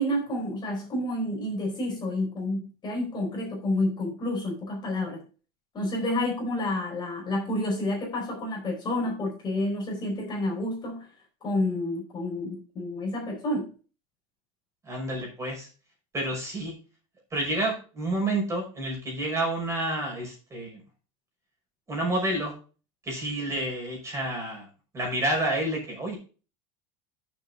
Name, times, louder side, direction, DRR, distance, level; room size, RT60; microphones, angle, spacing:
voice 1, 0.0-5.2 5.7-11.1 11.4-13.7, left 1 dB, 25° left, 0 dB, 4.5 m, -29 dB
voice 2, 14.8-15.7 16.1-16.8 17.3-20.8 21.9-22.5 23.0-24.7 24.9-26.2, right 1 dB, 15° right, 1 dB, 5.5 m, -29 dB
10.5 x 7.1 x 3.7 m, 0.35 s
supercardioid pair, 155°, 18 cm